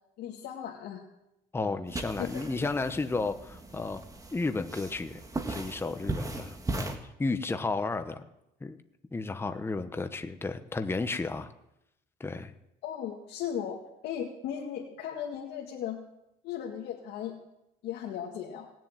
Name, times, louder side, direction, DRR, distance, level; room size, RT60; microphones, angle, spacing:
voice 1, 0.2-1.0 1.5-1.7 2.2-2.4 12.8-16.0 16.4-17.4 17.8-18.7, left 9 dB, 80° left, -2 dB, 2.0 m, -37 dB
voice 2, 1.5-4.0 4.3-5.2 5.5-8.2 8.6-8.8 9.1-11.5 12.2-12.5, left 3 dB, 15° left, 8 dB, 1.0 m, -33 dB
sound 1, 1.9-6.9, right 2 dB, 20° right, 1.8 m, -38 dB
18.5 x 7.6 x 9.1 m, 0.87 s
cardioid pair, 110°, 17 cm